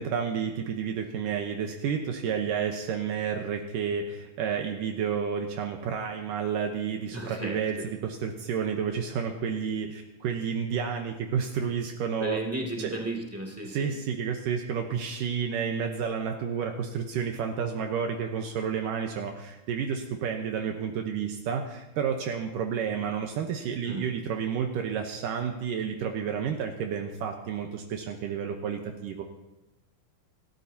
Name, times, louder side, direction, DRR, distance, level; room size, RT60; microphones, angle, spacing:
voice 1, 0.0-12.4 12.8-13.0 13.7-29.2, right 7 dB, 75° right, 3 dB, 2.4 m, -30 dB
voice 2, 7.1-7.9 12.2-13.9 23.8-24.1, right 1 dB, 5° right, -2 dB, 1.4 m, -34 dB
26.0 x 13.0 x 2.8 m, 1.0 s
omnidirectional pair, 4.1 m